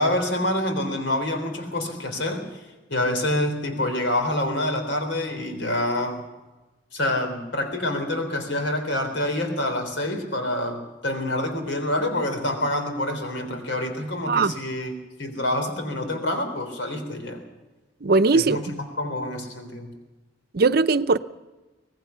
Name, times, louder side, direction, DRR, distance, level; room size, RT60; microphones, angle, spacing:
voice 1, 0.0-2.6 2.9-6.3 6.9-14.9 15.2-17.4 18.3-19.9, left 1 dB, 90° left, 6 dB, 3.6 m, -27 dB
voice 2, 18.0-18.6 20.5-21.2, right 3 dB, 55° right, 11 dB, 0.7 m, -19 dB
24.5 x 18.5 x 5.7 m, 1.2 s
head